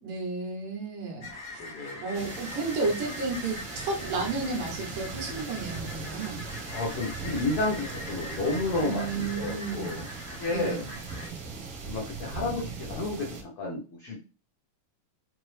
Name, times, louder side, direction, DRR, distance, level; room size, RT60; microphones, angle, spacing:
voice 1, 0.0-1.6 2.0-6.4 8.8-10.0 10.5-11.0, right 3 dB, 85° right, 1 dB, 2.7 m, -32 dB
sound 1, 1.2-11.3, left 2 dB, 60° left, 0.8 m, -43 dB
voice 2, 1.6-2.0 6.7-10.1 10.4-10.8 11.8-14.2, left 2 dB, 90° left, -3 dB, 1.2 m, -31 dB
sound 2, 2.1-13.4, right 4 dB, 65° right, 1.4 m, -39 dB
5.8 x 2.0 x 3.2 m, 0.33 s
omnidirectional pair, 3.7 m